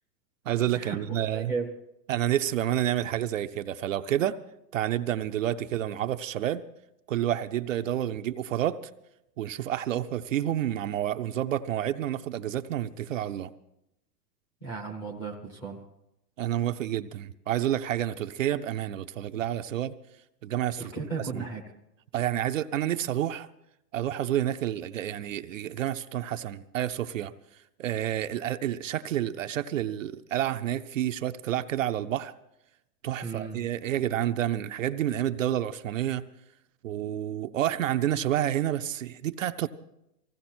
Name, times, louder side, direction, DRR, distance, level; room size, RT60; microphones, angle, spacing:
voice 1, 0.5-1.5 2.1-4.4 4.7-6.6 7.1-8.8 9.4-13.5 16.4-19.9 20.4-20.9 21.2-21.4 22.1-23.5 23.9-27.3 27.8-32.3 33.0-36.2 36.8-39.7, right 11 dB, 50° right, 9 dB, 0.6 m, -29 dB
voice 2, 1.3-1.7 14.6-15.8 20.8-21.6 33.2-33.6, right 4 dB, 10° left, 2 dB, 0.6 m, -35 dB
19.5 x 16.0 x 4.3 m, 0.84 s
supercardioid pair, 180°, 50 cm